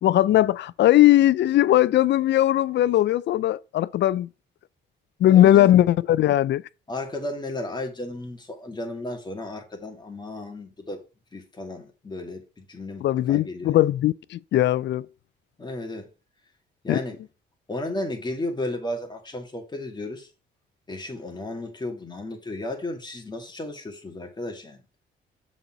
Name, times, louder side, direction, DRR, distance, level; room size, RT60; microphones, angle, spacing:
voice 1, 0.0-4.3 5.2-6.6 13.0-15.1 16.9-17.0, left 13 dB, 65° left, 0.5 m, -19 dB
voice 2, 5.3-5.7 6.9-11.0 11.3-13.8 15.6-16.1 16.8-17.2 17.7-20.3 20.9-24.8, left 1 dB, 20° left, 2.3 m, -34 dB
7.0 x 4.2 x 5.9 m
cardioid pair, 90°, 20 cm